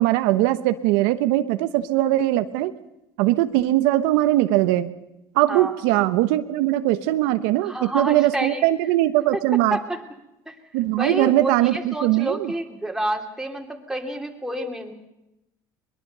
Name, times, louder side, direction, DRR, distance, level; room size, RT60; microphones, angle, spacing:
voice 1, 0.0-2.7 3.2-4.9 5.3-9.8 10.7-12.5, right 15 dB, 85° right, 11 dB, 1.0 m, -20 dB
voice 2, 7.6-8.6 9.3-9.4 9.7-10.0 10.5-10.6 10.9-14.9, right 1 dB, 5° right, 3 dB, 3.0 m, -29 dB
22.0 x 21.5 x 6.7 m, 0.90 s
supercardioid pair, 110°, 9 cm